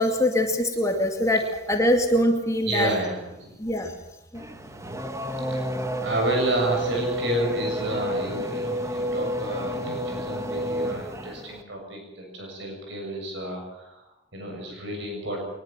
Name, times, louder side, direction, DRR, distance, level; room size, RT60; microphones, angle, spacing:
voice 1, 0.0-2.9 3.6-3.9 4.3-4.4, left 1 dB, 15° left, 3 dB, 2.4 m, -23 dB
voice 2, 2.6-3.6 5.5-15.4, right 1 dB, 65° right, 2 dB, 7.2 m, -31 dB
Race car auto racing / Accelerating revving vroom, 4.3-11.6, right 1 dB, 15° right, 1.8 m, -30 dB
23.5 x 21.0 x 7.6 m, 0.88 s
head